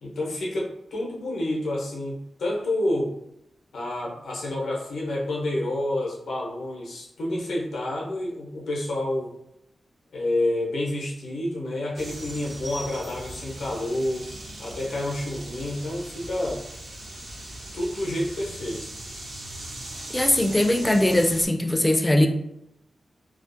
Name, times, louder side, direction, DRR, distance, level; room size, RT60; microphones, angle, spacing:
voice 1, 0.0-3.1 3.7-9.3 10.1-14.3 14.6-16.6 17.7-18.9, left 1 dB, 90° left, -3 dB, 0.7 m, -29 dB
sound 1, 11.9-21.5, right 1 dB, 65° right, 0.6 m, -39 dB
voice 2, 20.1-22.3, left 1 dB, 15° left, 5 dB, 0.3 m, -20 dB
2.4 x 2.0 x 2.5 m, 0.79 s
cardioid pair, 60°, 0 cm